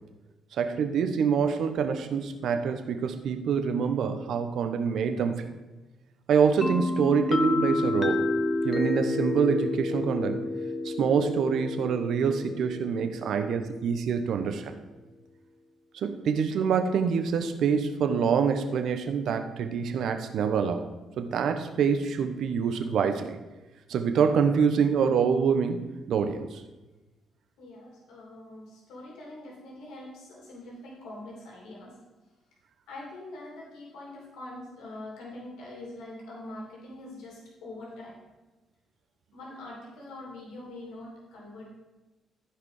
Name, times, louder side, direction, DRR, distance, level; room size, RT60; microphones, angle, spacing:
voice 1, 0.6-5.4 6.3-8.2 8.6-10.4 10.8-14.7 16.0-20.8 21.2-23.4 23.9-26.6, right 6 dB, 70° right, 7 dB, 1.0 m, -26 dB
sound 1, 6.6-14.3, left 2 dB, 30° left, 0.8 m, -30 dB
voice 2, 27.6-32.2 32.9-38.2 39.3-41.7, left 1 dB, 90° left, -3 dB, 2.9 m, -43 dB
14.5 x 5.0 x 4.9 m, 1.1 s
cardioid pair, 90°, 0 cm